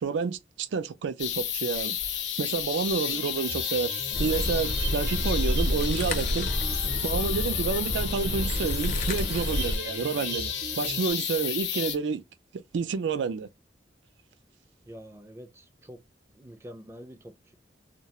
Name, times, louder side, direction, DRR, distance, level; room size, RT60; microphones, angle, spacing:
voice 1, 0.0-2.0 2.4-6.5 7.0-12.2 12.5-13.5, right 5 dB, 90° right, 0.3 m, -29 dB
sound 1, 1.2-12.0, left 9 dB, 90° left, 0.6 m, -32 dB
sound 2, 3.1-11.1, right 3 dB, 65° right, 0.7 m, -40 dB
sound 3, 4.1-9.8, left 1 dB, 45° left, 0.5 m, -29 dB
voice 2, 14.9-16.0 16.3-17.5, equal, 15° right, 0.3 m, -46 dB
2.3 x 2.1 x 2.8 m
head